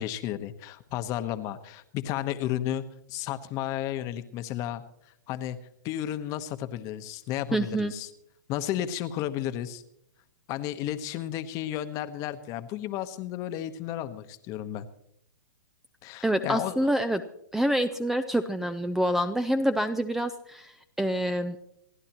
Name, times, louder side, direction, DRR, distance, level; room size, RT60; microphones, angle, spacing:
voice 1, 0.0-2.8 3.1-4.8 5.3-5.6 5.8-8.1 8.5-9.8 10.5-14.8 16.0-16.9, left 12 dB, 35° left, 10 dB, 1.1 m, -33 dB
voice 2, 7.5-7.9 16.2-17.2 17.5-20.7 21.0-21.6, right 1 dB, 5° right, 10 dB, 0.5 m, -26 dB
27.5 x 11.0 x 3.0 m, 0.76 s
hypercardioid pair, 125°, 10 cm